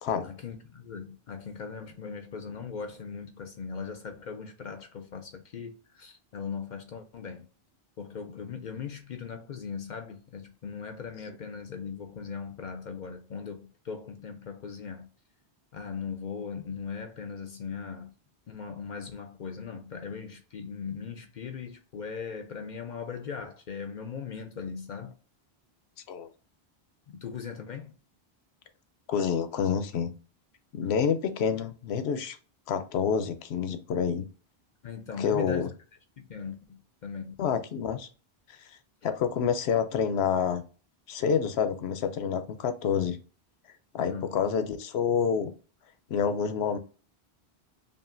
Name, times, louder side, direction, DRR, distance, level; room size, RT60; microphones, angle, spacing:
voice 1, 0.2-7.5 8.0-15.1 15.7-18.1 18.5-25.2 27.1-28.0 30.8-31.0 34.8-35.7 36.2-37.3 39.0-39.1 44.0-44.4, left 6 dB, 55° left, 0.5 m, -39 dB
voice 2, 29.1-30.1 30.7-32.4 32.7-34.3 35.2-35.7 37.4-38.1 39.0-40.6 41.1-43.2 43.9-45.5 46.1-46.8, left 7 dB, 80° left, 0.9 m, -28 dB
5.3 x 2.5 x 2.5 m
omnidirectional pair, 1.1 m